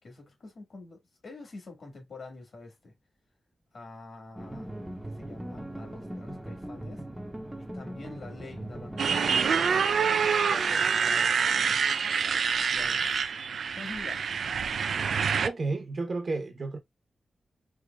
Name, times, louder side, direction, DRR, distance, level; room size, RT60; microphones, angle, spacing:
voice 1, 0.0-2.9 3.7-7.0 7.6-9.7 10.4-11.9 12.7-13.2 13.7-14.3, left 3 dB, 55° left, 1.6 m, -46 dB
sound 1, 4.4-9.5, right 1 dB, 5° right, 0.7 m, -40 dB
Motorcycle, 9.0-15.5, right 6 dB, 75° right, 0.3 m, -26 dB
voice 2, 15.4-16.8, right 3 dB, 45° right, 0.8 m, -31 dB
4.6 x 2.8 x 2.2 m
wide cardioid pair, 150°, 0 cm